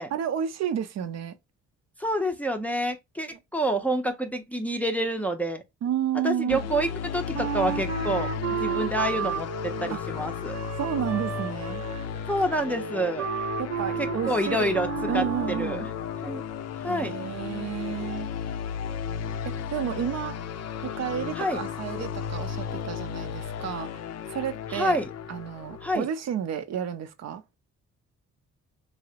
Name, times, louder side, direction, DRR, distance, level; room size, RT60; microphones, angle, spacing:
voice 1, 0.1-1.3 3.3-3.4 5.8-6.6 9.9-10.0 10.8-11.8 13.6-14.8 15.1-15.9 16.9-18.3 19.4-20.4 20.8-24.0 24.3-25.0 25.3-27.4, right 9 dB, 60° right, 0.5 m, -31 dB
voice 2, 2.0-5.6 6.2-8.3 8.6-10.5 12.3-13.3 14.0-15.8 16.2-16.4 16.8-17.2 21.4-21.6 24.7-25.1 25.8-26.1, right 1 dB, 5° left, 0.5 m, -28 dB
sound 1, 6.5-26.0, left 8 dB, 60° left, 0.4 m, -34 dB
Wind instrument woodwind instrument, 7.3-15.8, right 9 dB, 90° right, 0.9 m, -33 dB
3.2 x 2.0 x 2.7 m
cardioid pair, 90°, 30 cm